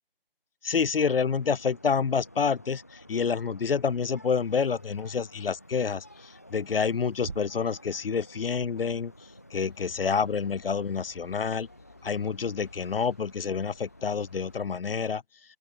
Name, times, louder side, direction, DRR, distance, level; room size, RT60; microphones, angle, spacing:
voice 1, 0.6-9.1 9.5-11.7 12.0-15.2, left 6 dB, 70° left, 0.8 m, -28 dB
sound 1, 1.0-14.6, equal, 15° left, 0.6 m, -53 dB
sound 2, 4.4-10.0, right 4 dB, 65° right, 2.6 m, -48 dB
sound 3, 9.5-14.7, left 5 dB, 45° left, 3.1 m, -59 dB
open air
figure-of-eight pair, 170°, 29 cm